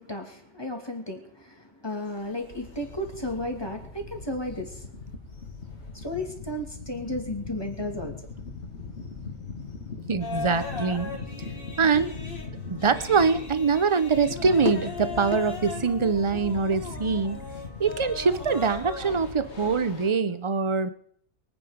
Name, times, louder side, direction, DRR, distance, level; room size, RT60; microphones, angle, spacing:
voice 1, 0.0-4.9 5.9-8.1, left 1 dB, 20° left, 2 dB, 2.6 m, -34 dB
sound 1, 1.9-20.1, left 4 dB, 70° left, 2.1 m, -39 dB
voice 2, 10.1-11.1 11.8-12.1 12.7-17.4 17.8-20.9, right 5 dB, 30° right, 13 dB, 0.8 m, -24 dB
sound 2, 10.2-19.3, left 4 dB, 50° left, 2.3 m, -38 dB
23.0 x 9.1 x 5.2 m, 0.64 s
omnidirectional pair, 1.2 m